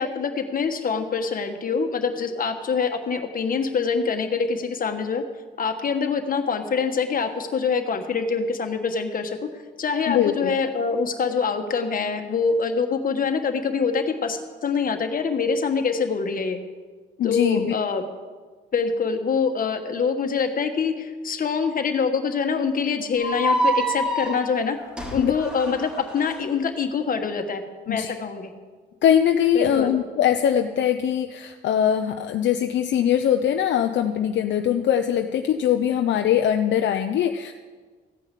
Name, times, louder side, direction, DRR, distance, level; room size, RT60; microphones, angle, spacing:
voice 1, 0.0-5.2 5.6-9.4 9.8-16.6 17.2-18.0 18.7-24.8 25.1-28.5 29.5-29.9, left 5 dB, 45° left, 6 dB, 1.4 m, -25 dB
voice 2, 10.1-10.6 17.2-17.7 25.2-25.3 27.9-28.1 29.0-37.5, left 9 dB, 65° left, 6 dB, 0.6 m, -22 dB
sound 1, 23.2-26.4, right 1 dB, 5° right, 2.4 m, -26 dB
15.0 x 5.6 x 8.3 m, 1.4 s
cardioid pair, 90°, 20 cm